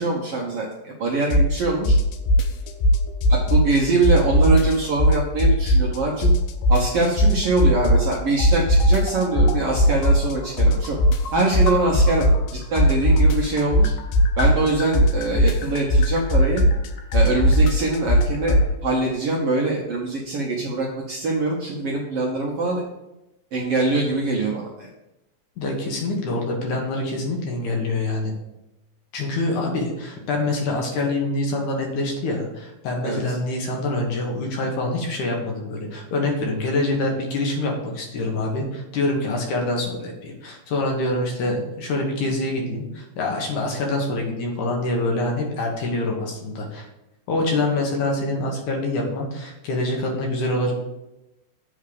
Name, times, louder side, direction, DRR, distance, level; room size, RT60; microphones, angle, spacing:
voice 1, 0.0-2.0 3.3-6.3 6.7-11.0 11.3-12.3 12.7-13.9 14.4-16.6 17.1-22.8 23.5-24.9 33.0-33.4, right 3 dB, 70° right, -3 dB, 1.4 m, -23 dB
sound 1, 1.3-1.6 1.9-6.0 6.2-8.1 8.4-12.5 12.8-18.7, equal, 90° left, 2.5 m, -17 dB
voice 2, 25.6-28.3 29.1-46.9 47.3-50.7, left 2 dB, 65° left, 0 dB, 2.6 m, -25 dB
7.9 x 3.7 x 6.7 m, 0.93 s
omnidirectional pair, 4.0 m